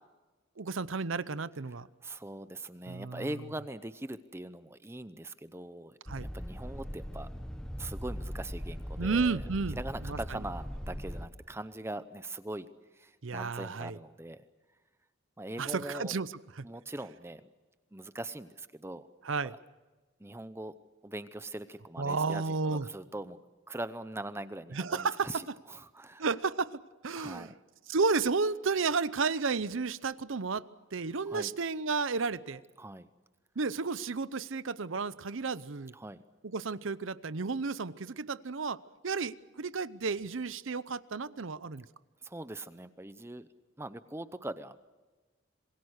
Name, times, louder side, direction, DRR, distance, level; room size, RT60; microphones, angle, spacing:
voice 1, 0.6-1.9 2.9-3.3 6.1-6.3 9.0-9.8 10.0-10.2 13.2-14.0 15.6-16.3 16.6-16.7 19.2-19.5 22.0-22.9 24.7-25.3 26.2-27.5 27.9-32.6 33.6-35.9 36.4-38.8 39.0-41.8, right 4 dB, 65° right, 16 dB, 0.7 m, -32 dB
voice 2, 2.0-6.0 6.3-7.3 7.8-9.4 9.7-14.4 15.4-16.2 16.6-17.5 17.9-19.1 19.4-19.6 20.2-20.7 21.0-23.4 23.7-26.2 27.2-27.6 31.3-31.6 32.8-33.1 35.9-36.2 42.2-43.5 43.8-44.8, right 1 dB, 10° right, 13 dB, 0.7 m, -41 dB
sound 1, 6.1-11.3, equal, 5° left, 1.2 m, -40 dB
27.0 x 21.5 x 6.6 m, 1.2 s
head